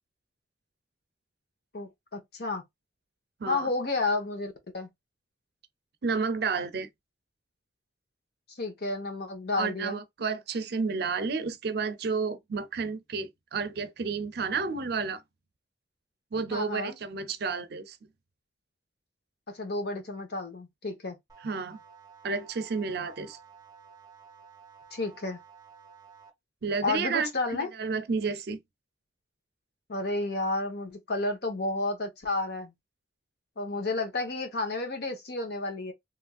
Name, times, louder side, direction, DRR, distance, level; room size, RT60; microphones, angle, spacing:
voice 1, 1.7-2.6 3.5-4.9 8.6-10.0 16.5-17.0 19.5-21.2 24.9-25.4 26.8-27.7 29.9-32.7 33.6-35.9, left 2 dB, 60° left, 0.9 m, -31 dB
voice 2, 6.0-6.9 9.6-15.2 16.3-18.0 21.4-21.8 22.2-23.4 26.6-28.6, right 4 dB, 60° right, 0.5 m, -31 dB
sound 1, 21.3-26.3, right 6 dB, 20° right, 0.7 m, -53 dB
3.0 x 2.5 x 2.3 m
head